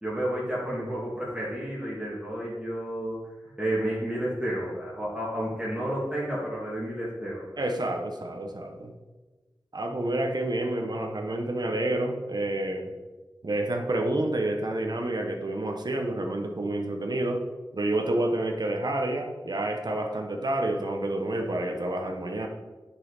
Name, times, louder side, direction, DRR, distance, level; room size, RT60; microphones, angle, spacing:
voice 1, 0.0-3.3 3.6-7.5, right 1 dB, 10° right, -7 dB, 2.2 m, -31 dB
voice 2, 7.6-8.9 9.7-12.9 13.4-17.4 17.7-22.5, right 1 dB, 55° right, 3 dB, 1.2 m, -29 dB
9.9 x 5.8 x 4.1 m, 1.2 s
wide cardioid pair, 65°, 8 cm